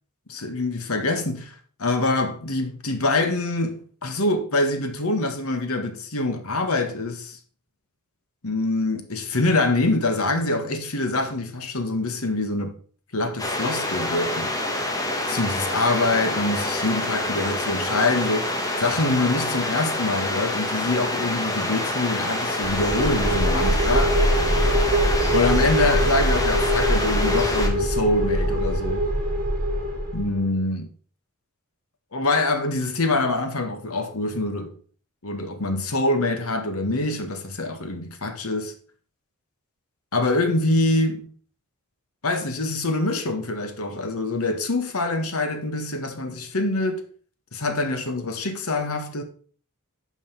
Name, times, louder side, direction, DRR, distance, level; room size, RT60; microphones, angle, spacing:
voice 1, 0.3-7.4 8.4-12.8 13.1-14.5 15.3-24.2 25.3-29.1 30.1-30.9 32.1-34.7 35.2-38.7 40.1-41.3 42.2-47.0 47.5-49.2, left 2 dB, 65° left, 1.4 m, -25 dB
sound 1, 13.4-27.7, left 1 dB, 15° left, 1.6 m, -27 dB
sound 2, 22.6-30.4, equal, 40° right, 5.3 m, -22 dB
9.4 x 5.3 x 5.3 m
head